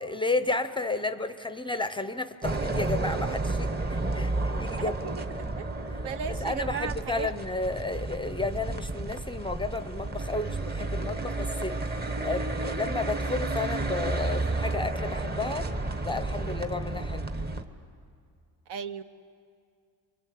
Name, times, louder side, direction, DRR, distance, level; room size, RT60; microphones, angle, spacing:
voice 1, 0.0-5.0 6.3-15.7 16.0-17.3, left 3 dB, 10° left, 11 dB, 0.6 m, -32 dB
sound 1, 2.4-17.6, right 2 dB, 20° right, 1.1 m, -31 dB
voice 2, 4.8-5.1 5.4-5.5 6.0-7.3 18.7-19.0, right 7 dB, 65° right, 10 dB, 1.1 m, -35 dB
27.5 x 24.0 x 8.4 m, 2.3 s
cardioid pair, 140°, 43 cm